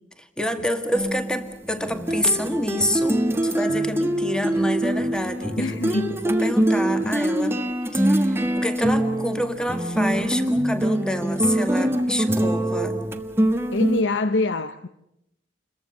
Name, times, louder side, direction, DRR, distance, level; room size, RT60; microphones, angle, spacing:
voice 1, 0.2-7.6 7.9-13.0, equal, 5° left, 2.0 m, -27 dB
sound 1, 0.9-14.0, right 1 dB, 15° right, 1.5 m, -24 dB
voice 2, 5.6-6.2 13.7-14.9, left 2 dB, 90° left, 0.9 m, -24 dB
29.0 x 22.5 x 6.7 m
head